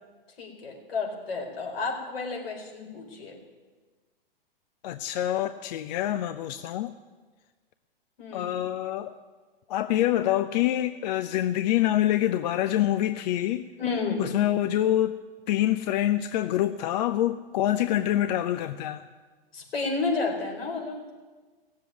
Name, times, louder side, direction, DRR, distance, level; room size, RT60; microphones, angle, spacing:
voice 1, 0.4-3.4 8.2-8.6 13.8-14.3 19.5-21.1, left 4 dB, 75° left, 0 dB, 4.7 m, -31 dB
voice 2, 4.8-6.9 8.3-9.2 9.7-13.7 14.2-19.1, left 13 dB, 45° left, 11 dB, 0.6 m, -26 dB
17.0 x 7.6 x 9.7 m, 1.4 s
hypercardioid pair, 120°, 30 cm